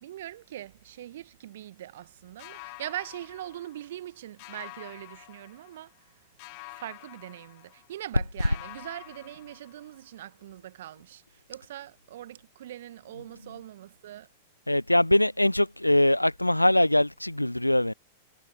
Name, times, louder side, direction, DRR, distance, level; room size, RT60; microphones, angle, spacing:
voice 1, 0.0-5.9 6.8-11.2 11.5-14.3, right 13 dB, 60° right, 1.5 m, -41 dB
sound 1, 2.4-4.1 4.4-6.0 6.4-8.1 8.4-10.1, left 40 dB or more, 45° left, 1.9 m, -48 dB
voice 2, 14.7-17.9, left 1 dB, 90° left, 0.5 m, -22 dB
figure-of-eight pair, 95°, 0 cm